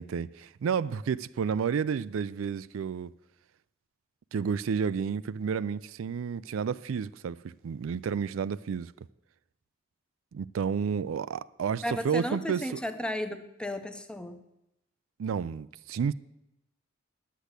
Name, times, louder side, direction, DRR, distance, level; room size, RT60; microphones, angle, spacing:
voice 1, 0.0-3.1 4.3-8.9 10.3-12.6 15.2-16.1, right 6 dB, 80° right, 0.4 m, -31 dB
voice 2, 11.8-14.4, left 1 dB, 5° left, 0.8 m, -34 dB
10.0 x 8.3 x 8.1 m
head